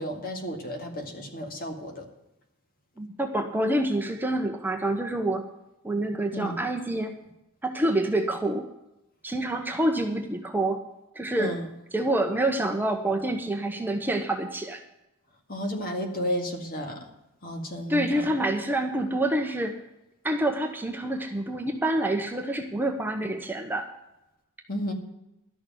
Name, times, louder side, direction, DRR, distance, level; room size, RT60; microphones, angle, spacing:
voice 1, 0.0-2.1 6.3-6.6 11.4-11.6 15.5-17.0 17.4-18.3 24.7-24.9, equal, 40° left, 3 dB, 2.1 m, -32 dB
voice 2, 3.0-5.5 5.8-7.1 7.6-8.7 9.2-10.8 11.1-11.6 11.9-14.8 17.9-19.8 20.2-23.9, right 1 dB, 10° right, 3 dB, 0.9 m, -27 dB
12.5 x 6.6 x 8.9 m, 0.91 s
head